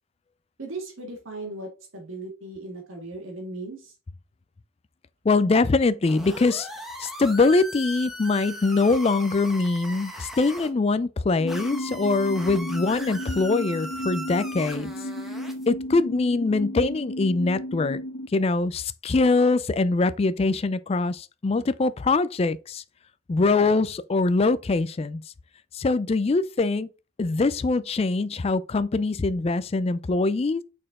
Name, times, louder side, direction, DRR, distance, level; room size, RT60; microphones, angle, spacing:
voice 1, 0.6-3.9, right 2 dB, 75° right, 1.8 m, -37 dB
voice 2, 5.2-6.7 7.0-14.9 15.7-18.0 18.3-22.8 23.3-25.2 25.7-26.9 27.2-30.6, left 3 dB, 30° left, 0.3 m, -23 dB
sound 1, 6.1-10.7 11.5-15.7, right 1 dB, ahead, 1.0 m, -39 dB
sound 2, 11.4-18.3, equal, 70° left, 1.0 m, -34 dB
6.5 x 4.3 x 3.6 m
head